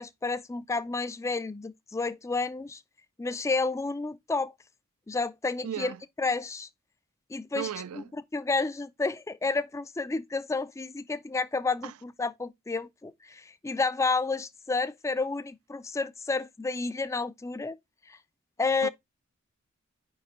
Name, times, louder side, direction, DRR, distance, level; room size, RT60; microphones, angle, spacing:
voice 1, 0.0-2.8 3.2-4.5 5.1-6.7 7.3-7.7 8.3-17.8 18.1-18.2 18.6-18.9, left 3 dB, 15° left, 0.3 m, -30 dB
voice 2, 5.6-6.0 7.5-8.1 11.8-11.9 18.8-18.9, right 9 dB, 80° right, 0.4 m, -36 dB
5.4 x 5.0 x 3.5 m
head